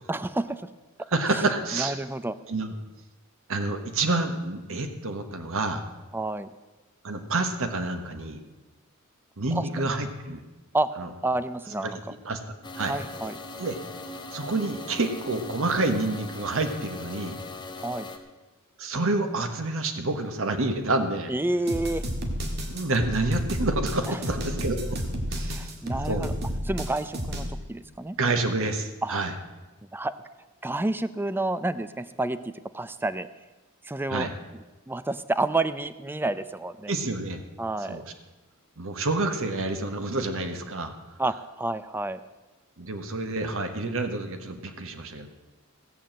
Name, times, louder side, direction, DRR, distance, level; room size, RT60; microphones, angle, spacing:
voice 1, 0.1-0.7 1.3-1.4 1.7-2.4 6.1-6.5 9.5-9.7 10.7-10.9 11.2-12.0 12.9-13.4 17.8-18.1 21.3-22.0 24.1-24.2 25.4-26.3 26.6-28.2 29.0-29.2 29.9-30.1 30.6-33.3 33.8-34.3 34.9-36.9 37.6-38.0 41.2-42.2, right 2 dB, 10° right, 13 dB, 0.4 m, -29 dB
voice 2, 1.1-2.0 2.5-2.7 3.5-5.8 7.0-8.4 9.4-10.4 11.0-11.1 11.8-11.9 12.2-12.4 12.8-12.9 13.6-13.8 14.3-17.4 18.8-21.3 22.7-25.0 25.3-25.7 26.0-26.3 28.2-29.3 34.1-34.3 36.9-37.4 37.9-38.0 38.8-40.9 42.8-45.3, right 2 dB, 65° right, 7 dB, 1.3 m, -28 dB
sound 1, 12.6-18.2, left 2 dB, 20° left, 1.2 m, -40 dB
sound 2, 21.7-27.5, equal, 50° right, 1.7 m, -31 dB
16.5 x 7.1 x 7.5 m, 1.1 s
head